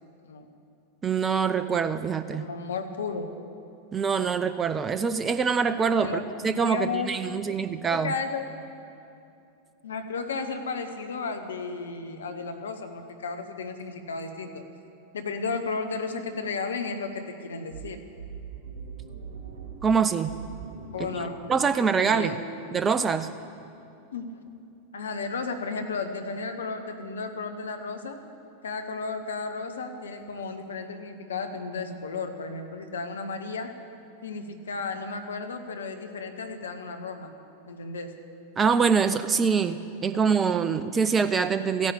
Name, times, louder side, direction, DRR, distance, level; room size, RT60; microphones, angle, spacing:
voice 1, 1.0-2.5 3.9-8.1 19.8-20.3 21.0-22.3 22.7-23.3 38.6-41.9, right 6 dB, 20° right, 12 dB, 0.5 m, -25 dB
voice 2, 2.3-3.3 6.0-6.2 6.5-7.1 7.8-8.4 9.8-14.6 15.1-18.0 20.9-21.4 21.9-22.4 24.1-24.2 24.9-28.2 28.6-33.7 34.2-37.3 37.7-38.1, left 4 dB, 65° left, 7 dB, 1.3 m, -33 dB
sound 1, 17.7-23.3, right 6 dB, 55° right, 2.7 m, -43 dB
15.0 x 10.5 x 8.6 m, 2.7 s
figure-of-eight pair, 90°, 0 cm